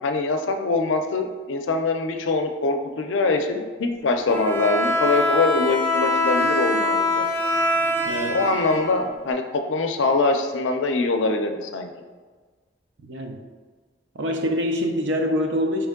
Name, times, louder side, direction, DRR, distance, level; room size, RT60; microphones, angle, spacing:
voice 1, 0.0-7.3 8.3-11.9, left 3 dB, 90° left, 5 dB, 0.5 m, -23 dB
Bowed string instrument, 4.3-9.3, left 1 dB, 10° left, 0.5 m, -23 dB
voice 2, 8.0-8.4 13.0-13.4 14.1-15.9, equal, 70° right, 3 dB, 0.5 m, -25 dB
4.4 x 3.1 x 3.5 m, 1.4 s
head